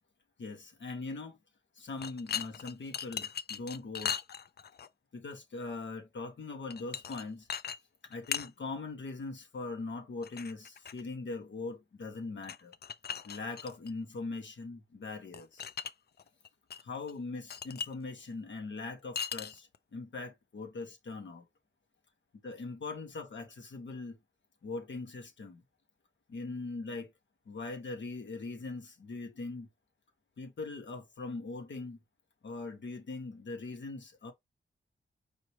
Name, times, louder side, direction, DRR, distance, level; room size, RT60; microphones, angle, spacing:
voice 1, 0.4-1.4 1.8-4.2 5.1-7.5 8.0-12.7 13.2-15.7 16.8-21.4 22.4-24.2 24.6-25.6 26.3-27.1 27.5-29.7 30.4-32.0 32.4-34.3, left 3 dB, 75° left, 1.3 m, -41 dB
sound 1, 2.0-4.9 6.7-7.2 7.5-7.8 8.0-8.5 10.2-11.0 12.4-13.9 15.3-15.9 16.2-16.8 17.1-17.2 17.5-17.9 19.2-19.8, left 7 dB, 55° left, 0.5 m, -38 dB
5.0 x 3.0 x 3.1 m
wide cardioid pair, 90°, 20 cm